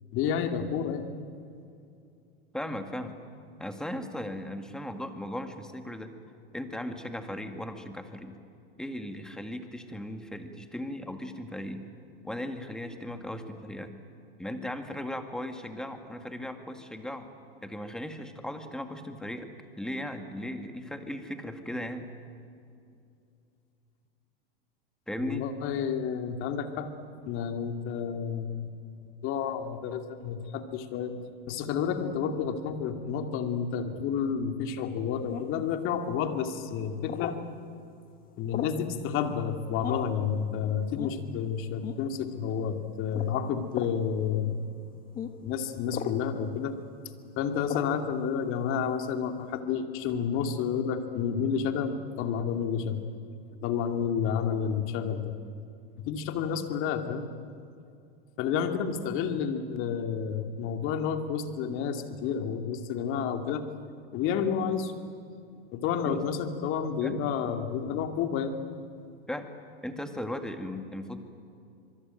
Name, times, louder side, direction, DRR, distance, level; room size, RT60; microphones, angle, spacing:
voice 1, 0.1-1.1 25.2-26.9 27.3-28.7 29.2-31.2 31.5-37.4 38.4-44.6 45.4-46.8 47.4-53.0 53.6-55.4 56.0-57.3 58.4-63.7 64.1-64.9 65.7-68.6, left 7 dB, 45° left, 6 dB, 2.5 m, -30 dB
voice 2, 2.5-3.2 3.6-6.2 6.5-8.4 8.8-11.9 12.2-13.9 14.4-17.3 17.6-22.1 25.1-25.5 66.0-66.2 67.0-67.2 69.3-69.5 69.8-71.2, left 1 dB, ahead, 6 dB, 2.1 m, -37 dB
sound 1, 35.3-35.7 37.1-37.4 38.5-38.8 39.8-40.2 41.0-41.2 41.8-42.0 43.1-43.3 43.7-44.0 45.1-45.3 45.9-46.2 47.7-48.0, left 9 dB, 30° left, 1.5 m, -36 dB
25.5 x 23.0 x 9.2 m, 2.5 s
supercardioid pair, 130°, 30 cm